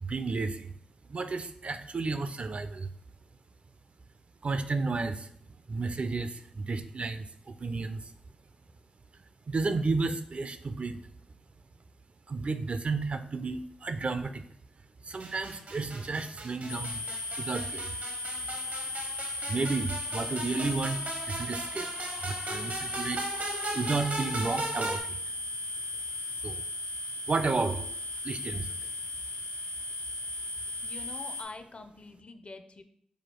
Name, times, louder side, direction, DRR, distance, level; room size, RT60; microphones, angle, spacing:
voice 1, 0.0-0.7 1.1-2.9 4.4-5.3 5.7-8.1 9.5-11.0 12.3-14.5 15.1-17.0 17.4-18.0 19.5-21.0 21.3-21.9 22.2-25.2 26.4-26.6 27.3-27.9 28.2-28.8, right 3 dB, 50° right, 10 dB, 0.4 m, -32 dB
sound 1, 15.2-25.0, right 2 dB, 70° right, 0.9 m, -38 dB
sound 2, 16.7-31.4, left 2 dB, 90° left, 0.6 m, -36 dB
voice 2, 30.8-32.8, left 3 dB, 45° left, 8 dB, 0.5 m, -45 dB
4.9 x 2.3 x 4.4 m, 0.66 s
cardioid pair, 50°, 3 cm